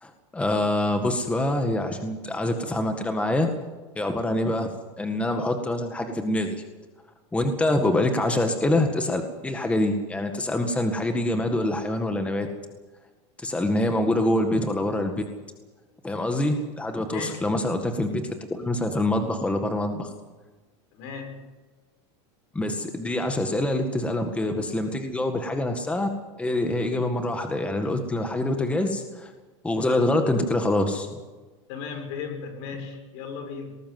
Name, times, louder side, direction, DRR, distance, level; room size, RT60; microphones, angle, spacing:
voice 1, 0.0-3.5 4.0-6.6 7.3-12.5 13.4-15.2 16.0-20.1 22.5-26.1 26.4-29.3 29.6-31.2, left 1 dB, 10° left, 5 dB, 1.9 m, -25 dB
voice 2, 17.1-17.5 20.9-21.5 31.7-33.8, left 5 dB, 60° left, 6 dB, 6.6 m, -36 dB
20.0 x 19.0 x 7.8 m, 1.3 s
supercardioid pair, 140°, 16 cm